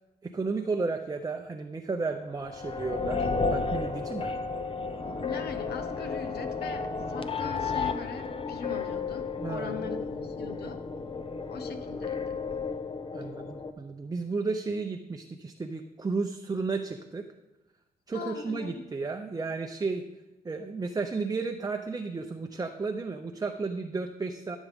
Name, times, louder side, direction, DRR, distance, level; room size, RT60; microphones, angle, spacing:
voice 1, 0.2-4.3 9.4-9.9 13.1-17.2 18.1-20.0 20.4-24.6, right 4 dB, 25° right, 4 dB, 0.6 m, -33 dB
sound 1, 2.4-13.7, left 4 dB, 35° left, 0.7 m, -33 dB
voice 2, 5.2-10.8 11.5-12.4 18.1-18.7, left 5 dB, 90° left, 7 dB, 1.0 m, -40 dB
14.5 x 7.2 x 3.6 m, 1.1 s
cardioid pair, 85°, 16 cm